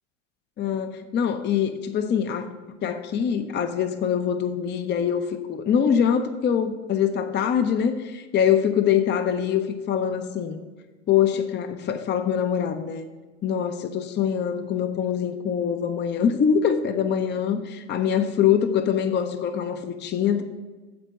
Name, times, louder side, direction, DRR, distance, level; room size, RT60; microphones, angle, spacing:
voice 1, 0.6-2.5 2.8-10.6 11.1-13.0 13.4-20.4, left 8 dB, 30° left, 8 dB, 0.6 m, -24 dB
8.7 x 4.4 x 7.3 m, 1.3 s
hypercardioid pair, 75°, 37 cm